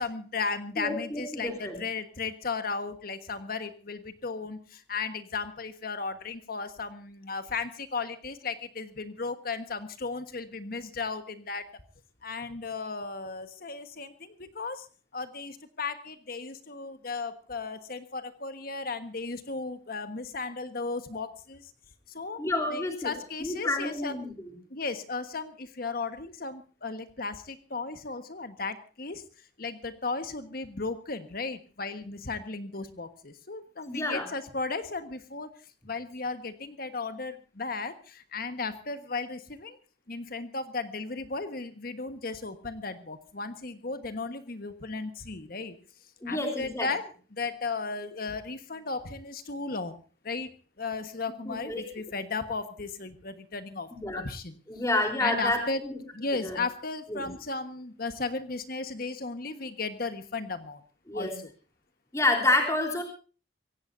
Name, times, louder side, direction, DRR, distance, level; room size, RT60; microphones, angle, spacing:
voice 1, 0.0-11.7 12.2-14.9 15.1-21.7 22.1-22.4 22.7-24.1 24.7-29.2 29.6-35.5 35.8-39.8 40.1-45.8 46.3-47.0 47.3-50.0 50.2-50.5 50.8-54.6 55.2-55.8 56.1-60.8 61.1-61.5, left 4 dB, 55° left, 10 dB, 1.4 m, -35 dB
voice 2, 0.8-1.8 22.4-23.1 23.4-24.5 33.9-34.3 46.2-46.9 51.5-51.8 53.9-54.2 54.7-56.0 56.4-56.6 57.1-57.3 61.1-61.4 62.1-63.0, left 2 dB, 15° left, 3 dB, 3.6 m, -29 dB
24.5 x 17.0 x 2.7 m, 0.38 s
head